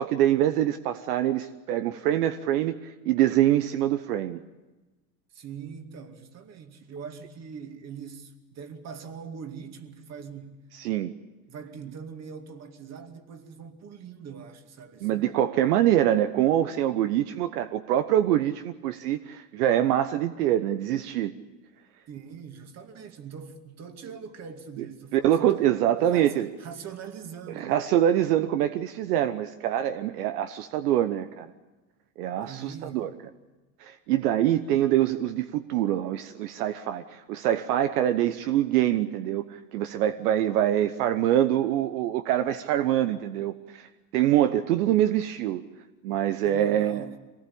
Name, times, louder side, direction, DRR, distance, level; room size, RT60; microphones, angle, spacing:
voice 1, 0.0-4.4 10.7-11.1 15.0-21.3 25.1-26.5 27.5-31.5 32.2-33.1 33.8-43.9 44.1-45.6 46.0-47.0, right 12 dB, 70° right, 1.1 m, -25 dB
voice 2, 5.3-10.6 11.5-15.3 22.1-25.7 26.0-27.9 32.5-33.0 46.4-47.2, right 6 dB, 35° right, 2.3 m, -42 dB
23.5 x 18.5 x 8.6 m
hypercardioid pair, 115°, 47 cm